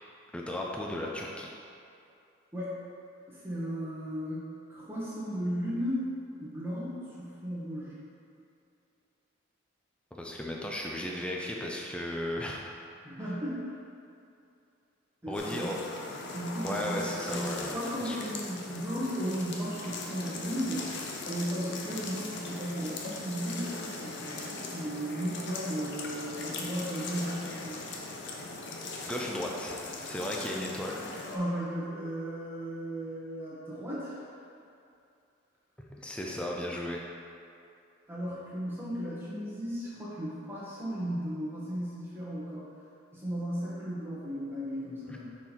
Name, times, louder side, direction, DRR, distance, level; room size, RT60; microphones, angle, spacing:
voice 1, 0.3-1.5 10.1-12.6 13.2-13.3 15.3-15.8 16.6-18.2 29.0-31.0 35.9-37.0, left 1 dB, 5° left, -2 dB, 0.5 m, -35 dB
voice 2, 3.3-4.4 4.7-6.1 6.4-8.0 11.1-11.2 13.0-13.8 15.2-15.8 16.3-20.9 21.2-27.8 31.2-34.3 38.1-42.6 43.1-45.3, equal, 10° right, -9 dB, 1.3 m, -35 dB
sound 1, 15.4-31.4, left 3 dB, 55° left, 0.6 m, -40 dB
6.0 x 4.2 x 4.5 m, 2.6 s
head